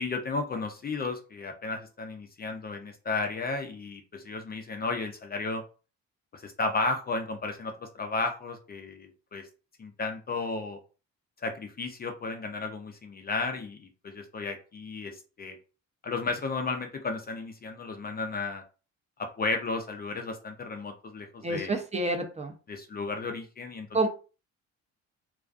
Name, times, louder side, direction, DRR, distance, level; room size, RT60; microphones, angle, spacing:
voice 1, 0.0-5.6 6.3-9.5 9.8-10.8 11.4-15.6 16.0-18.6 19.2-21.8 22.7-23.9, left 3 dB, 30° left, 5 dB, 0.4 m, -33 dB
voice 2, 21.4-22.5 23.9-24.1, right 2 dB, 20° right, 4 dB, 0.5 m, -28 dB
2.3 x 2.3 x 2.3 m, 0.35 s
cardioid pair, 90°, 30 cm